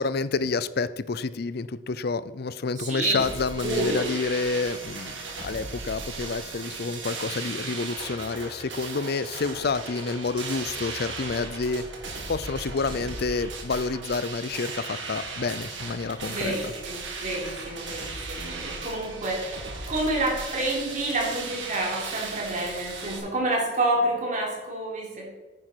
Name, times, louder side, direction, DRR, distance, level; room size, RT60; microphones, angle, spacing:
voice 1, 0.0-11.8 12.3-16.7, left 4 dB, 60° left, 16 dB, 0.5 m, -29 dB
voice 2, 2.8-3.2 3.6-4.0 16.3-25.3, right 2 dB, 45° right, -3 dB, 3.6 m, -28 dB
sound 1, 3.2-23.2, right 3 dB, 90° right, 2.4 m, -37 dB
10.0 x 9.8 x 4.5 m, 1.2 s
head